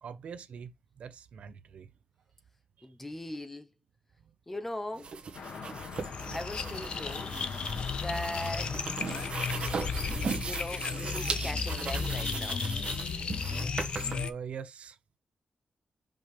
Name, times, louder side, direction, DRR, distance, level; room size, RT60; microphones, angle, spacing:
voice 1, 0.0-1.9 2.8-2.9 4.2-4.3 14.1-15.0, right 7 dB, 70° right, 0.9 m, -43 dB
voice 2, 2.8-3.7 4.5-5.2 6.3-7.3 8.0-9.0 9.9-12.6, left 1 dB, 10° left, 0.8 m, -40 dB
sound 1, 4.9-14.1, right 5 dB, 55° right, 1.7 m, -38 dB
sound 2, 5.3-10.4, left 5 dB, 80° left, 1.7 m, -43 dB
sound 3, 5.9-14.3, left 5 dB, 50° left, 0.8 m, -34 dB
5.7 x 5.4 x 3.5 m
wide cardioid pair, 165°, 2 cm